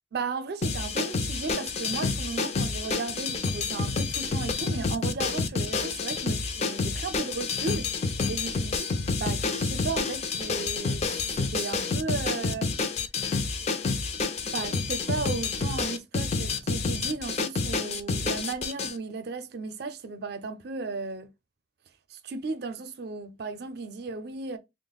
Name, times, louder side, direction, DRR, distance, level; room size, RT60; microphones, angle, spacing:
voice 1, 0.1-11.1 11.4-12.7 14.4-21.3 22.1-24.6, right 4 dB, 60° right, 0.5 m, -35 dB
sound 1, 0.6-18.9, left 4 dB, 40° left, 0.4 m, -29 dB
3.0 x 2.0 x 4.0 m
head